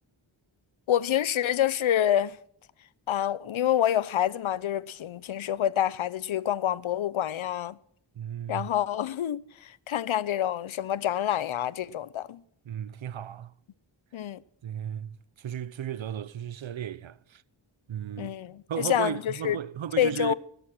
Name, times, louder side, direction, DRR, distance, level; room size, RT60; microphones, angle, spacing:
voice 1, 0.9-2.4 3.1-7.8 8.5-12.4 14.1-14.4 18.2-19.6 20.0-20.3, left 11 dB, 85° left, 0.7 m, -27 dB
voice 2, 8.2-8.7 12.7-13.5 14.6-17.4 17.9-18.3 18.7-20.3, right 9 dB, 75° right, 0.8 m, -35 dB
16.0 x 13.5 x 6.0 m
wide cardioid pair, 75°, 46 cm